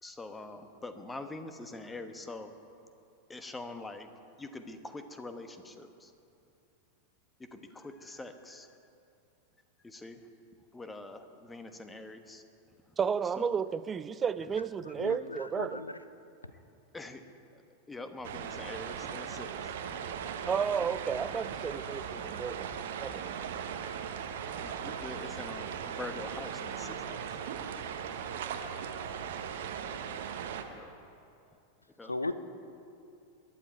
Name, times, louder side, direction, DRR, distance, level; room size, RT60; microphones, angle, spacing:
voice 1, 0.0-2.5 3.3-4.1 4.4-6.1 7.5-8.8 9.8-10.2 10.7-12.4 13.4-13.5 16.9-17.2 17.5-17.6 17.9-19.7 24.6-28.6 30.7-31.0 32.0-32.1, left 2 dB, 10° left, 8 dB, 1.2 m, -45 dB
voice 2, 13.0-15.8 20.5-23.3, right 6 dB, 20° right, 15 dB, 0.4 m, -32 dB
voice 3, 14.8-15.9 32.0-32.3, left 2 dB, 80° left, 11 dB, 0.7 m, -36 dB
sound 1, 18.2-30.6, right 7 dB, 55° right, 1.1 m, -38 dB
21.5 x 11.5 x 4.6 m, 2.6 s
figure-of-eight pair, 90°, 0 cm